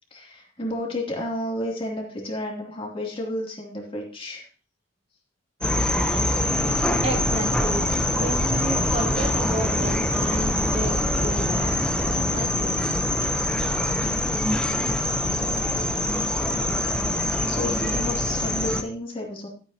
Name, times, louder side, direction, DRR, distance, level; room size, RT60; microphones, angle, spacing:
voice 1, 0.1-4.5 17.5-19.5, left 1 dB, 25° left, -2 dB, 3.0 m, -31 dB
sound 1, 5.6-18.8, left 1 dB, 5° left, 0.9 m, -24 dB
voice 2, 7.0-12.7, right 2 dB, 30° right, 5 dB, 0.9 m, -32 dB
12.5 x 9.1 x 2.9 m, 0.40 s
head